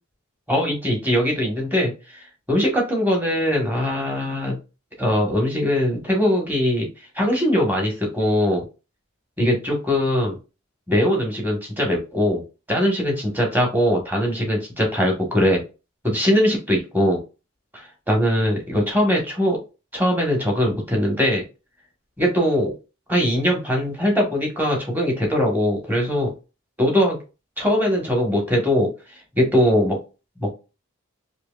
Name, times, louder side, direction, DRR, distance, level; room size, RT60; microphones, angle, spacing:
voice 1, 0.5-1.9 2.5-4.6 5.0-6.9 7.1-8.6 9.4-10.4 10.9-12.4 12.7-15.6 16.0-17.2 17.7-19.6 19.9-21.4 22.2-22.7 23.1-26.3 26.8-27.2 27.6-28.9 29.3-30.0 30.4-30.5, equal, 10° right, 0 dB, 1.3 m, -21 dB
4.4 x 2.9 x 2.4 m, 0.30 s
head